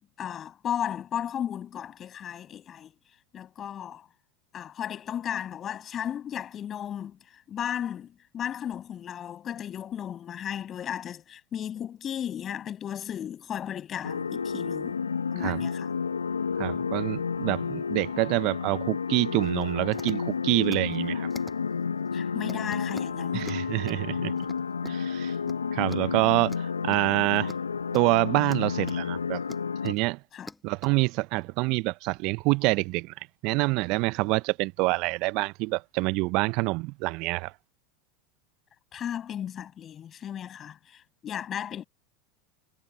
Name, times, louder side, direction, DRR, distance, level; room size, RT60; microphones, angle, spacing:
voice 1, 0.2-2.9 3.3-4.1 4.5-15.0 15.3-15.9 22.1-23.5 30.3-30.5 38.9-41.8, left 9 dB, 35° left, 6.5 m, -35 dB
sound 1, 14.0-29.9, left 5 dB, 90° left, 1.2 m, -31 dB
voice 2, 16.6-21.3 23.3-24.3 24.8-25.3 25.7-26.5 26.8-27.5 27.9-29.4 29.8-30.2 30.6-33.1 33.4-37.5, right 25 dB, 55° right, 0.8 m, -26 dB
sound 2, 19.4-19.6 19.9-20.2 20.6-21.0 21.3-21.6 22.0-22.1 22.5-24.0 24.4-25.0 25.3-25.6 25.9-26.0 26.4-29.0 29.4-30.1 30.4-30.9 31.3-31.4, left 2 dB, 10° left, 7.3 m, -46 dB
hypercardioid pair, 85°, 0 cm